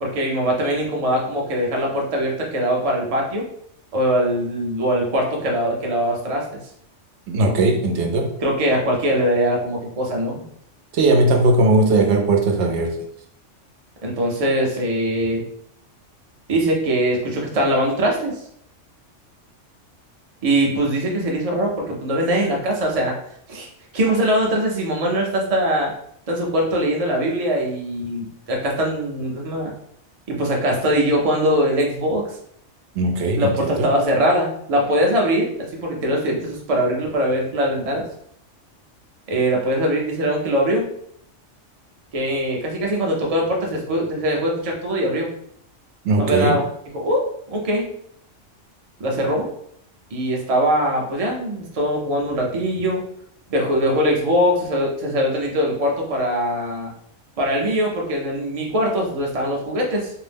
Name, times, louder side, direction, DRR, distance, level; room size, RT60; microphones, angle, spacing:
voice 1, 0.0-3.5 3.9-6.4 8.4-10.5 14.0-15.4 16.5-18.3 20.4-23.1 23.5-23.7 23.9-25.9 26.3-29.7 30.3-32.2 33.4-38.0 39.3-40.9 42.1-45.3 46.2-47.9 49.0-49.5 50.1-53.0 53.5-56.9 57.4-60.1, equal, 40° right, -1 dB, 0.5 m, -22 dB
voice 2, 7.3-8.3 10.9-13.0 32.9-33.9 46.0-46.6, right 2 dB, 70° right, 4 dB, 0.8 m, -18 dB
2.6 x 2.0 x 3.3 m, 0.69 s
omnidirectional pair, 1.3 m